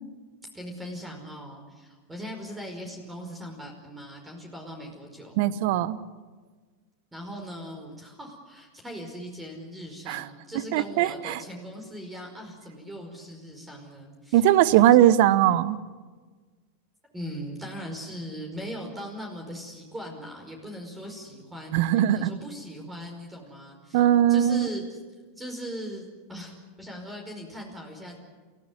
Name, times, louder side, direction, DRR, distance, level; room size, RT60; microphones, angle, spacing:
voice 1, 0.5-5.3 7.1-14.4 17.1-24.0 24.3-24.8 25.3-28.2, equal, 10° right, 2 dB, 5.2 m, -39 dB
voice 2, 5.4-6.0 10.1-10.3 10.7-11.4 14.3-15.8 21.7-22.3 23.9-24.7, right 12 dB, 55° right, 17 dB, 1.0 m, -20 dB
29.0 x 15.5 x 9.8 m, 1.4 s
hypercardioid pair, 95°, 0 cm